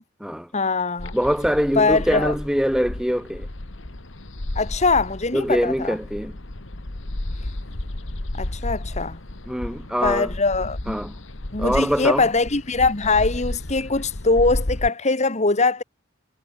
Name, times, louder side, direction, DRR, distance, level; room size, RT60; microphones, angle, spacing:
voice 1, 0.5-1.1 1.7-2.3 4.5-6.0 8.4-9.2 10.0-11.0 11.5-15.8, left 3 dB, 35° left, 1.7 m, -22 dB
sound 1, 1.0-14.9, left 1 dB, 70° left, 1.9 m, -33 dB
voice 2, 1.1-3.5 5.3-6.4 9.5-10.3 10.9-11.2 11.6-12.3, equal, 5° right, 2.1 m, -23 dB
head